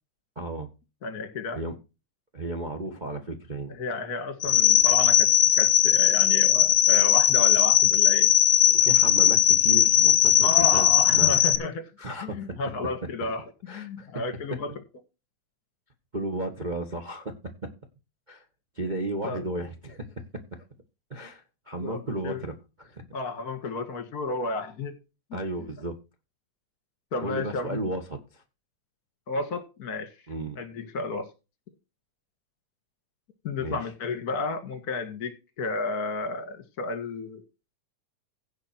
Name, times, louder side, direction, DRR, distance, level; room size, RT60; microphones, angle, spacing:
voice 1, 0.3-0.7 1.5-1.8 2.3-3.7 8.7-10.9 11.1-11.4 12.0-12.5 13.7-14.1 16.1-17.3 17.6-17.7 18.3-18.4 18.8-20.1 21.1-22.5 22.8-23.0 25.3-25.9 27.2-28.4 30.3-30.6 33.6-33.8, right 2 dB, 70° right, 0.4 m, -33 dB
voice 2, 1.0-1.6 3.7-5.3 5.5-8.3 10.4-11.8 12.2-14.7 19.2-19.4 21.8-22.4 23.1-25.0 27.1-27.8 29.3-30.2 30.5-31.3 33.4-37.4, left 3 dB, 40° left, 1.7 m, -32 dB
sound 1, 4.4-11.6, left 11 dB, 55° left, 1.7 m, -19 dB
16.5 x 5.9 x 4.4 m
omnidirectional pair, 3.6 m